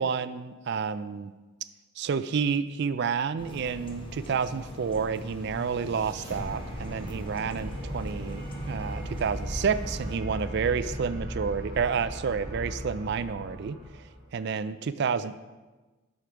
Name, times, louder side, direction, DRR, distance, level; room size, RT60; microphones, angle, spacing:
voice 1, 0.0-1.3 2.0-13.8 14.3-15.4, right 6 dB, 50° right, 13 dB, 0.3 m, -30 dB
sound 1, 3.4-10.2, equal, 25° left, 0.7 m, -41 dB
sound 2, 5.3-14.4, equal, 15° right, 1.6 m, -38 dB
8.5 x 6.5 x 4.5 m, 1.2 s
head